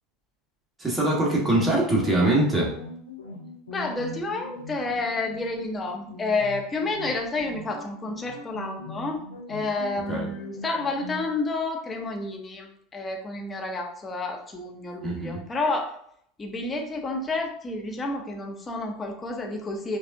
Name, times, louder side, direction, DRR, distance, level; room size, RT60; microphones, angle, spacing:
voice 1, 0.8-2.7 10.1-10.3 15.0-15.4, right 1 dB, 15° right, -3 dB, 1.5 m, -23 dB
sound 1, 1.5-11.3, left 3 dB, 85° left, 0.6 m, -41 dB
voice 2, 3.7-15.9 16.4-20.0, left 3 dB, 25° left, 2 dB, 0.8 m, -30 dB
5.0 x 2.3 x 2.6 m, 0.67 s
hypercardioid pair, 80°, 0 cm